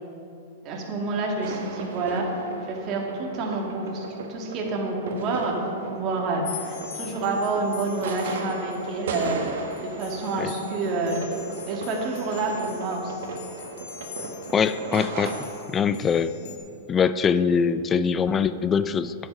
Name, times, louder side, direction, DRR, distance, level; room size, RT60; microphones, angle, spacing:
voice 1, 0.6-2.3 2.7-9.4 9.8-11.2 11.7-13.3, right 3 dB, 40° right, 0 dB, 1.9 m, -28 dB
sound 1, 1.4-15.5, right 4 dB, 70° right, 1.4 m, -36 dB
sound 2, 6.4-16.6, left 8 dB, 65° left, 1.2 m, -44 dB
voice 2, 14.5-16.3 16.9-19.1, left 6 dB, 20° left, 13 dB, 0.4 m, -23 dB
9.9 x 8.0 x 5.6 m, 2.6 s
hypercardioid pair, 120°, 0 cm